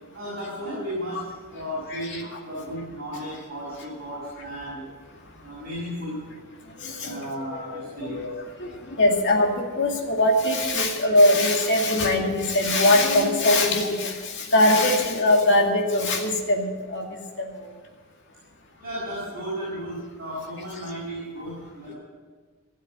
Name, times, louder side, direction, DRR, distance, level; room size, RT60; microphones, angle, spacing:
voice 1, 0.1-4.9 5.4-6.3 7.0-8.2 18.8-21.9, equal, 45° right, -8 dB, 5.9 m, -34 dB
voice 2, 1.9-2.2 6.8-8.7 9.0-17.5, left 1 dB, 55° left, 1 dB, 2.3 m, -22 dB
17.0 x 7.5 x 9.0 m, 1.4 s
head